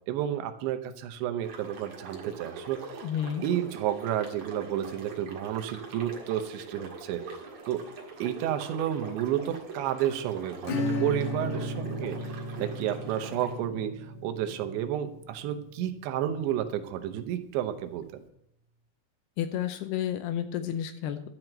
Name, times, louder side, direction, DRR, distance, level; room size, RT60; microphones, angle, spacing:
voice 1, 0.1-3.1 3.4-7.9 8.2-18.2, right 11 dB, 85° right, 9 dB, 3.2 m, -31 dB
sound 1, 1.4-13.6, right 4 dB, 50° right, 2.4 m, -43 dB
voice 2, 3.0-3.4 19.4-21.3, left 10 dB, 80° left, 9 dB, 2.5 m, -31 dB
Acoustic guitar / Strum, 10.6-16.9, left 3 dB, 65° left, 2.3 m, -37 dB
Piano, 10.7-16.3, right 3 dB, 30° right, 1.9 m, -40 dB
12.5 x 6.0 x 7.8 m, 0.75 s
omnidirectional pair, 5.1 m